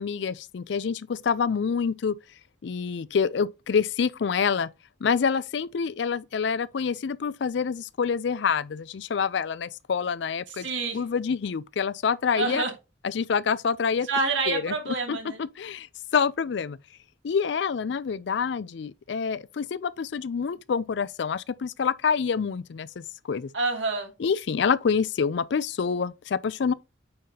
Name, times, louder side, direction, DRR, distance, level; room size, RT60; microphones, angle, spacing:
voice 1, 0.0-2.2 2.6-4.7 5.0-10.7 10.9-12.6 13.0-14.1 14.5-14.7 15.1-15.9 16.1-16.8 17.2-23.5 24.2-26.7, left 6 dB, 65° left, 0.4 m, -27 dB
voice 2, 10.5-11.0 12.3-12.7 14.1-15.4 23.5-24.1, right 3 dB, 75° right, 2.6 m, -28 dB
8.6 x 5.6 x 2.8 m
head